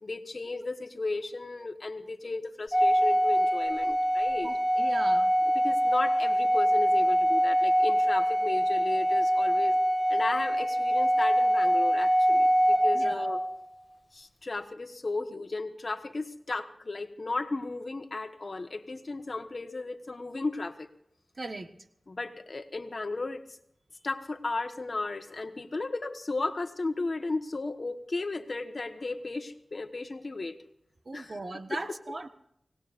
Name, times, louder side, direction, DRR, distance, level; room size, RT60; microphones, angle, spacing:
voice 1, 0.0-4.5 5.4-9.8 10.1-13.4 14.1-20.9 22.1-23.4 24.0-30.6 31.1-32.2, left 3 dB, 60° left, 8 dB, 1.4 m, -35 dB
Organ, 2.7-13.6, equal, ahead, 2.0 m, -24 dB
voice 2, 4.4-5.3 12.9-13.3 21.4-21.7 31.1-32.3, right 2 dB, 60° right, 7 dB, 1.4 m, -38 dB
25.0 x 19.0 x 2.6 m, 0.75 s
wide cardioid pair, 60°, 0 cm